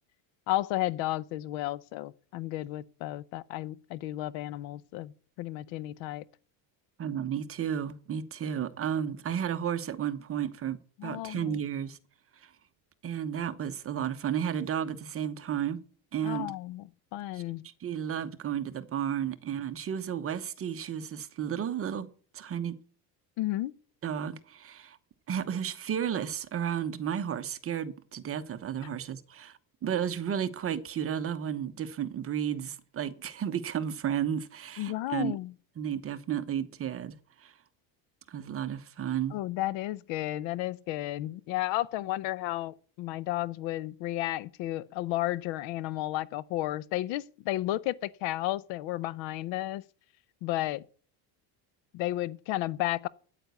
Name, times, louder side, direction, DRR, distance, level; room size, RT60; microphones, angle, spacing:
voice 1, 0.5-6.2 11.0-11.6 16.2-17.7 23.4-23.7 28.8-28.9 34.8-35.5 39.3-49.8 50.4-50.8 51.9-53.1, left 16 dB, 75° left, 0.8 m, -33 dB
voice 2, 7.0-10.8 11.0-12.0 12.4-12.5 13.0-15.8 16.1-16.5 17.3-17.4 17.8-22.1 22.3-22.7 24.0-25.0 25.3-35.4 35.8-37.5 38.3-39.4, right 9 dB, 30° right, 1.0 m, -33 dB
9.2 x 9.1 x 8.2 m
cardioid pair, 155°, 46 cm